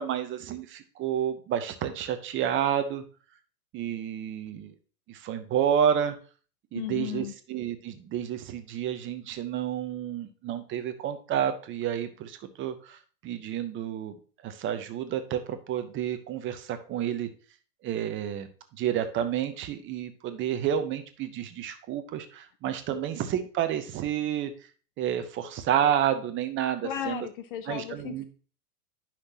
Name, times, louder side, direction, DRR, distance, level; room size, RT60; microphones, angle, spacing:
voice 1, 0.0-3.0 3.7-4.7 5.1-6.1 6.7-14.1 14.4-17.3 17.8-18.5 18.7-24.5 25.0-27.3 27.7-28.2, right 9 dB, 25° right, 9 dB, 0.8 m, -30 dB
voice 2, 6.7-7.3 26.8-28.2, left 11 dB, 35° left, 11 dB, 0.4 m, -35 dB
9.7 x 5.9 x 2.9 m, 0.39 s
hypercardioid pair, 105°, 48 cm